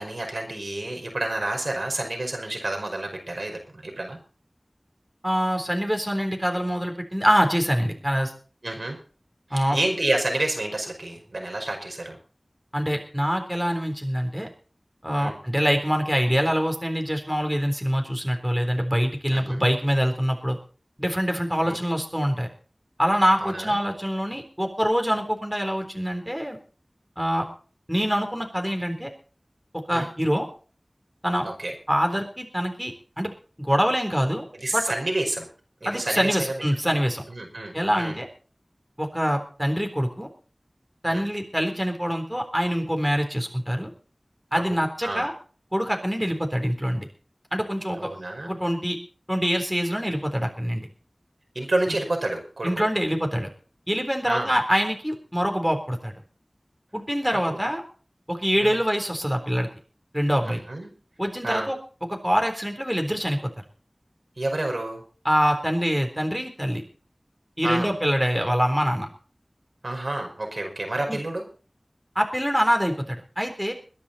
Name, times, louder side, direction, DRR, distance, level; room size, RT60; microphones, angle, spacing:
voice 1, 0.0-4.2 8.6-9.0 9.5-12.2 15.2-15.3 19.3-19.6 21.6-21.8 23.4-23.8 29.9-30.1 31.4-31.7 34.5-35.5 35.8-36.6 37.3-38.2 41.1-41.3 44.5-45.3 48.0-48.5 51.6-52.9 54.3-54.5 57.5-57.6 58.6-58.8 60.4-60.9 61.4-61.7 64.4-65.0 67.6-67.9 69.8-71.5, right 2 dB, 85° right, 2 dB, 5.3 m, -29 dB
voice 2, 5.2-8.3 9.5-9.8 12.7-14.5 15.0-20.6 21.0-22.5 23.0-26.6 27.2-27.5 27.9-29.1 29.7-30.5 31.2-31.5 31.9-33.3 33.6-34.4 34.7-34.8 35.9-37.2 37.7-38.3 39.0-40.3 41.0-43.9 44.5-45.3 45.7-47.1 47.5-48.1 48.4-49.0 49.3-50.9 52.6-53.5 53.9-56.1 56.9-57.8 58.3-59.7 60.1-60.6 61.2-61.8 62.1-63.5 65.3-66.8 67.6-69.1 71.1-71.2 72.2-73.7, equal, 5° right, 4 dB, 3.8 m, -25 dB
21.5 x 10.5 x 4.2 m, 0.39 s
wide cardioid pair, 45°, 0 cm